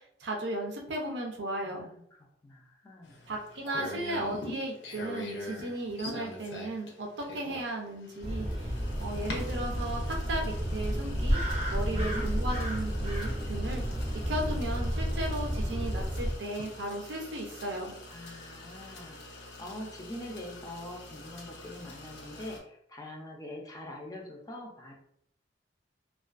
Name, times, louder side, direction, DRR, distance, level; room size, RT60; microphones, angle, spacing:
voice 1, 0.0-1.9 3.3-8.7 9.0-11.4 11.7-14.0 14.3-17.9, right 1 dB, 80° right, 1 dB, 0.5 m, -35 dB
voice 2, 1.6-3.2 11.8-12.3 18.1-24.9, left 1 dB, 20° left, 0 dB, 0.4 m, -44 dB
sound 1, 3.0-22.6, left 2 dB, 80° left, 0.6 m, -45 dB
sound 2, 8.2-16.3, equal, 35° right, 0.5 m, -31 dB
2.3 x 2.3 x 2.4 m, 0.71 s
head